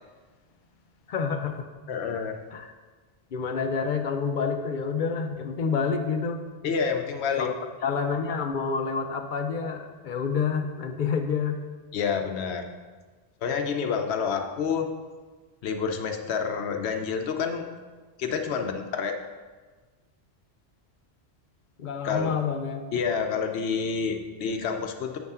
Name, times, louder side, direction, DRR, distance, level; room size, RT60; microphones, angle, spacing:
voice 1, 1.1-1.7 2.5-2.7 3.3-6.4 7.4-7.5 7.8-11.6 21.8-22.8, left 5 dB, 55° left, 6 dB, 0.7 m, -28 dB
voice 2, 1.9-2.4 6.6-7.5 11.9-12.6 13.4-14.9 15.6-17.7 18.2-19.1 22.0-22.4 22.9-25.2, left 6 dB, 80° left, 5 dB, 1.0 m, -28 dB
8.1 x 3.5 x 5.5 m, 1.4 s
omnidirectional pair, 1.1 m